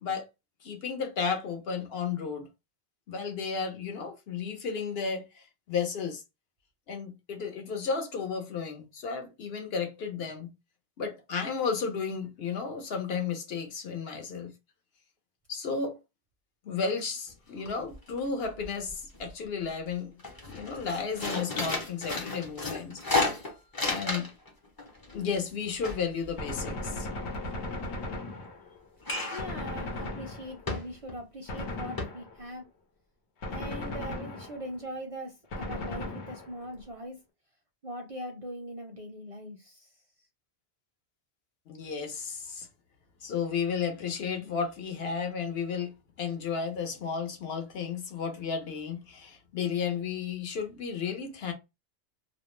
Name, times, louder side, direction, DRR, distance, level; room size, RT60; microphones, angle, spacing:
voice 1, 0.6-2.5 3.1-6.2 6.9-10.5 11.0-14.5 15.5-16.0 16.6-20.2 20.5-23.0 23.8-24.3 25.1-27.1 41.7-42.7 43.2-45.9 46.2-51.5, left 6 dB, 65° left, 0.9 m, -33 dB
sound 1, 17.3-17.4 17.7-18.2 18.5-19.3 19.7-19.9 20.2-24.5 24.8-27.2 29.0-29.6 30.0-30.1 30.7-31.2 31.6-31.7 32.0-32.1, left 2 dB, 25° left, 0.5 m, -33 dB
Gunshot gunfire, 26.4-28.9 29.4-30.8 31.5-32.5 33.4-34.8 35.5-36.7, left 2 dB, 90° left, 1.0 m, -37 dB
voice 2, 29.3-32.7 33.5-37.2 37.8-40.0, equal, 45° right, 0.5 m, -41 dB
2.5 x 2.0 x 3.0 m
omnidirectional pair, 1.1 m